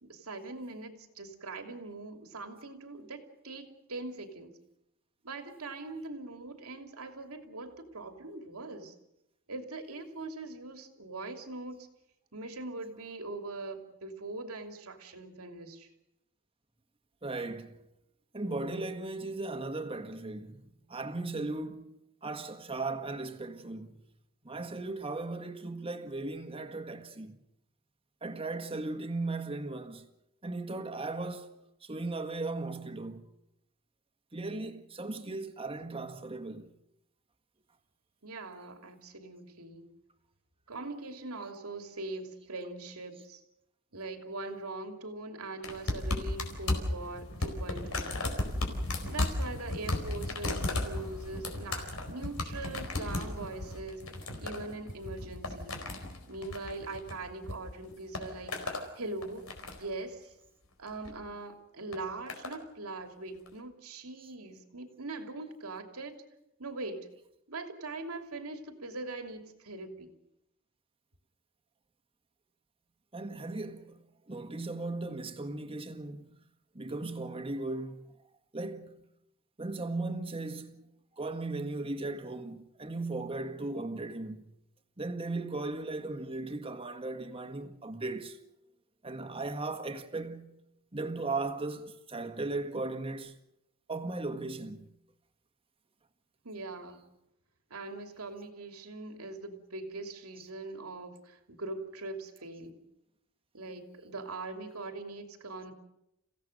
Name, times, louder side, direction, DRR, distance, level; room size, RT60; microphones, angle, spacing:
voice 1, 0.0-4.5 5.2-8.9 9.5-11.9 12.3-15.9 38.2-39.9 40.7-43.4 43.9-48.1 49.1-54.1 54.4-55.8 56.3-59.5 59.8-60.3 60.8-66.2 66.6-67.1 67.5-70.1 96.4-97.1 97.7-102.8 103.5-105.7, right 2 dB, 90° right, 2.8 m, -42 dB
voice 2, 17.2-17.8 18.3-24.0 24.4-27.4 28.2-30.1 30.4-33.3 34.3-36.7 64.2-64.3 73.1-76.3 76.7-78.1 78.5-79.0 79.6-80.8 81.2-84.5 85.0-88.4 89.0-90.5 90.9-93.4 93.9-94.9 100.4-100.5, right 2 dB, 25° right, 1.6 m, -37 dB
sound 1, 45.6-57.6 57.8-58.9 59.2-59.9 60.9-61.1 61.9-62.6 63.5-63.6, left 2 dB, 80° left, 4.6 m, -35 dB
30.0 x 16.5 x 6.6 m
head